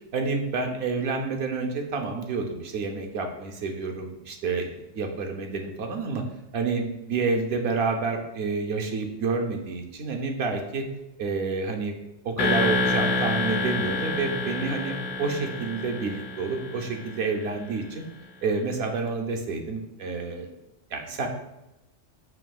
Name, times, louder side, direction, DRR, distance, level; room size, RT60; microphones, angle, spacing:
voice 1, 0.1-6.2 6.5-10.9 11.2-12.0 12.2-18.0 18.4-20.5 20.9-21.3, right 4 dB, 70° right, 3 dB, 0.8 m, -29 dB
sound 1, 12.4-17.3, left 3 dB, 90° left, 1.1 m, -28 dB
5.9 x 2.7 x 2.3 m, 0.92 s
omnidirectional pair, 1.2 m